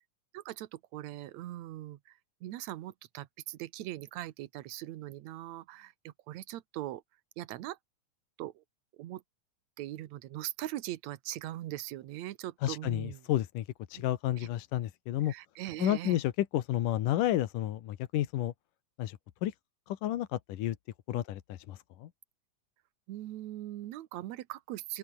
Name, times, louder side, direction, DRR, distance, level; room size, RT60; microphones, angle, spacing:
voice 1, 0.3-7.0 7.4-7.8 8.4-8.6 9.0-9.2 9.8-13.2 14.0-14.1 14.4-14.5 15.2-16.2 21.1-21.2 23.1-25.0, right 14 dB, 65° right, 2.1 m, -41 dB
voice 2, 12.6-13.6 13.9-15.3 15.8-18.5 19.0-19.5 19.9-20.8 21.1-22.1, left 13 dB, 75° left, 2.7 m, -31 dB
open air
omnidirectional pair, 3.8 m